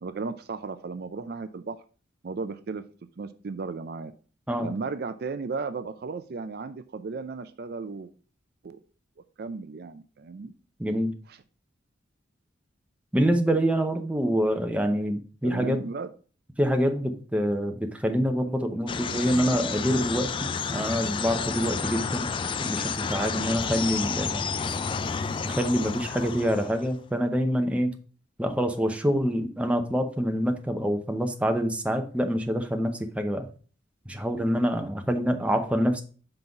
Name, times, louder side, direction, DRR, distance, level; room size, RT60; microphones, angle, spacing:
voice 1, 0.0-1.8 2.2-2.8 3.2-4.1 4.6-8.1 8.6-8.8 9.4-10.5 11.3-11.4 15.4-16.1, right 4 dB, 55° right, 11 dB, 0.4 m, -35 dB
voice 2, 10.8-11.1 13.1-15.8 16.6-22.3 22.6-24.4 25.4-27.9 28.4-33.5 34.1-36.0, equal, 5° right, 5 dB, 0.7 m, -26 dB
sound 1, 18.9-27.0, left 5 dB, 25° left, 0.3 m, -31 dB
5.6 x 3.9 x 5.8 m, 0.40 s
head